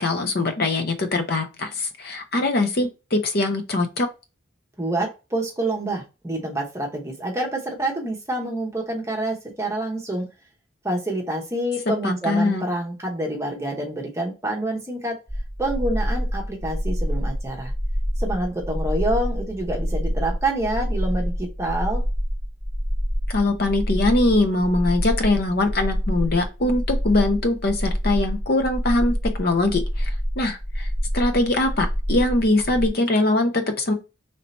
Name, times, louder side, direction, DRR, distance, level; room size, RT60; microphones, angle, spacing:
voice 1, 0.0-4.1 12.0-12.6 23.3-33.9, left 2 dB, 50° left, 0.7 m, -22 dB
voice 2, 4.8-10.3 10.8-15.2 15.6-17.7 18.2-22.0, right 1 dB, 15° right, 0.9 m, -27 dB
sound 1, 15.3-32.9, equal, 10° left, 1.2 m, -26 dB
3.2 x 2.8 x 4.1 m
head